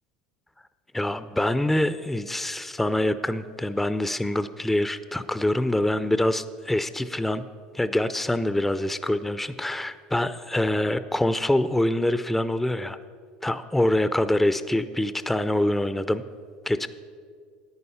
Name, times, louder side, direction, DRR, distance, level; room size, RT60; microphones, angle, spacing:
voice 1, 0.9-7.4 7.7-13.0 13.4-16.2 16.7-16.9, left 1 dB, 5° left, 13 dB, 0.4 m, -25 dB
9.8 x 9.2 x 5.6 m, 2.1 s
supercardioid pair, 95°, 4 cm